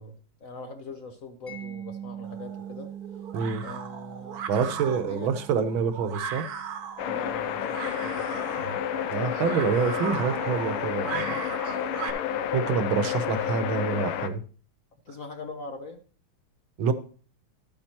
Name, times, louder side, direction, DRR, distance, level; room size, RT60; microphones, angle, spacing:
voice 1, 0.0-2.9 3.6-5.3 7.0-8.6 15.0-16.0, left 3 dB, 55° left, 0.9 m, -42 dB
Mallet percussion, 1.5-8.2, right 8 dB, 10° left, 1.5 m, -43 dB
sound 1, 2.2-12.1, right 7 dB, 55° right, 1.2 m, -38 dB
voice 2, 3.3-3.6 4.5-6.4 8.6-8.8 9.1-11.4 12.5-14.4 16.8-16.9, right 6 dB, 75° right, 1.6 m, -27 dB
sound 2, 7.0-14.3, left 9 dB, 90° left, 1.6 m, -30 dB
12.0 x 8.7 x 2.9 m
omnidirectional pair, 2.3 m